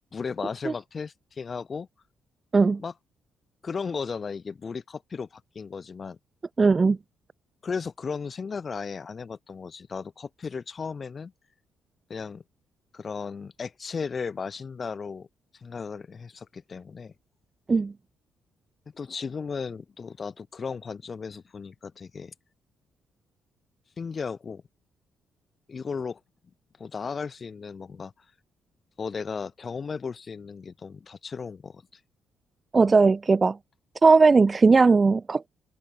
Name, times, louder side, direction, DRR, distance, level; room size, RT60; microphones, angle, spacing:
voice 1, 0.1-1.9 2.8-2.9 3.6-6.2 7.6-11.3 12.1-12.4 12.9-15.3 15.5-17.1 18.9-22.3 24.0-24.6 25.7-26.2 26.8-28.3 29.0-32.0, left 5 dB, 40° left, 5.2 m, -35 dB
voice 2, 6.6-7.0 17.7-17.9 32.7-33.6 34.0-35.5, right 4 dB, 30° right, 0.5 m, -18 dB
cardioid pair, 90°, 0 cm